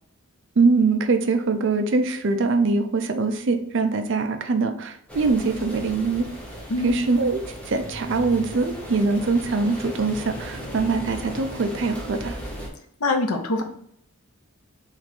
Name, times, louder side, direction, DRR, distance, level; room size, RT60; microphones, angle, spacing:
voice 1, 0.6-6.3 6.8-7.4 7.7-12.4, right 4 dB, 55° right, 7 dB, 0.5 m, -23 dB
sound 1, 5.1-12.7, equal, 5° left, 0.8 m, -36 dB
voice 2, 13.0-13.6, left 2 dB, 85° left, 5 dB, 0.7 m, -23 dB
3.4 x 3.1 x 4.0 m, 0.67 s
head